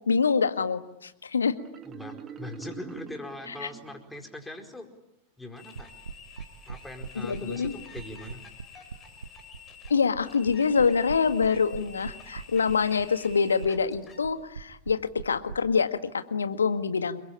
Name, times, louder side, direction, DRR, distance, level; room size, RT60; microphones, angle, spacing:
voice 1, 0.1-1.5 3.5-3.7 7.2-7.7 9.9-17.2, left 5 dB, 75° left, 9 dB, 1.9 m, -25 dB
Marimba xylophone, 1.6-4.3, right 8 dB, 25° right, 2.3 m, -44 dB
voice 2, 1.8-4.9 5.4-5.9 6.7-8.4, left 2 dB, 5° left, 4 dB, 4.7 m, -41 dB
sound 1, 5.6-14.2, left 5 dB, 25° left, 6.4 m, -49 dB
sound 2, 5.8-15.6, right 5 dB, 75° right, 1.2 m, -40 dB
29.5 x 22.5 x 8.9 m, 0.82 s
figure-of-eight pair, 90°, 0 cm